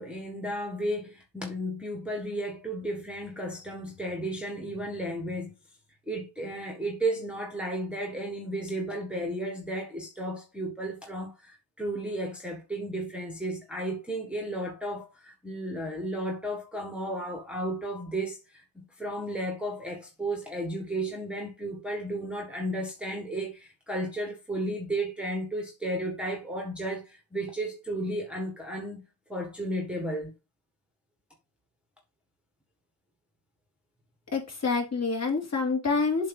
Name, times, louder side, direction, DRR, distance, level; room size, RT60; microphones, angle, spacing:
voice 1, 0.0-5.5 6.1-29.0 29.3-30.3, right 1 dB, ahead, 1.4 m, -33 dB
voice 2, 34.3-36.3, left 4 dB, 30° left, 2.2 m, -27 dB
7.7 x 2.8 x 5.3 m
cardioid pair, 120°, 48 cm